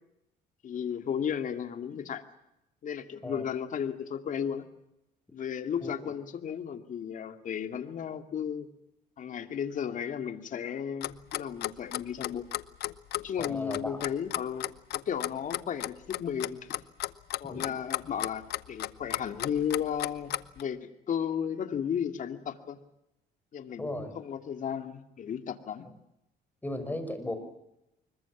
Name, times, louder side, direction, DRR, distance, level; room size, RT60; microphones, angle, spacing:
voice 1, 0.6-2.2 2.8-4.6 5.3-8.7 9.2-12.4 13.2-14.7 14.9-16.8 17.4-22.8 23.5-25.9, left 8 dB, 50° left, 8 dB, 2.5 m, -34 dB
voice 2, 5.8-6.2 13.4-14.0 17.5-17.7 23.8-24.1 26.6-27.3, left 1 dB, 10° left, 7 dB, 5.5 m, -36 dB
Clock, 11.0-20.6, left 15 dB, 70° left, 1.0 m, -34 dB
25.0 x 22.0 x 7.3 m, 0.86 s
cardioid pair, 110°, 17 cm